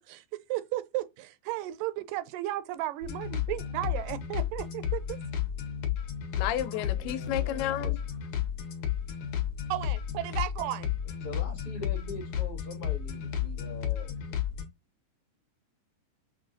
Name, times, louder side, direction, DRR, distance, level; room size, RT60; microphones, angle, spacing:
voice 1, 0.5-5.2 7.4-7.6 9.7-10.9, right 15 dB, 85° right, 2.1 m, -34 dB
sound 1, 3.0-14.7, left 9 dB, 70° left, 1.9 m, -33 dB
voice 2, 6.4-8.0, left 11 dB, 85° left, 2.2 m, -31 dB
voice 3, 6.9-8.1 11.2-14.4, left 2 dB, 50° left, 1.8 m, -43 dB
6.0 x 2.3 x 2.5 m
omnidirectional pair, 3.8 m